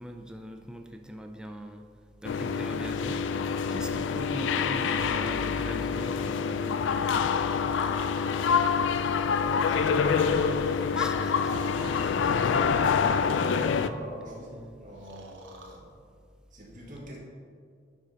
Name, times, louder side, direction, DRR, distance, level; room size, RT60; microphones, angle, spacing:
voice 1, 0.0-1.9 2.2-7.3 10.9-11.7 12.2-12.4 13.4-13.7, equal, 5° right, 4 dB, 0.4 m, -41 dB
sound 1, 2.2-13.9, left 6 dB, 70° left, 0.3 m, -26 dB
Breathing, 7.4-8.4 9.5-10.7 11.3-12.1 13.1-14.4 15.0-15.8, right 2 dB, 80° right, 1.0 m, -45 dB
voice 2, 9.0-10.2 12.5-15.9 16.5-17.2, equal, 45° right, -3 dB, 1.7 m, -44 dB
9.1 x 5.1 x 4.1 m, 2.1 s
head